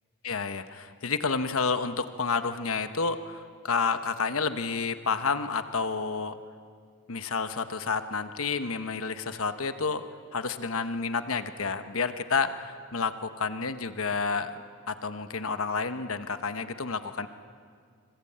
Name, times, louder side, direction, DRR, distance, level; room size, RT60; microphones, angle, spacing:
voice 1, 0.2-6.3 7.1-10.0 10.3-17.3, left 5 dB, 70° left, 10 dB, 1.1 m, -30 dB
26.0 x 26.0 x 8.7 m, 2.1 s
head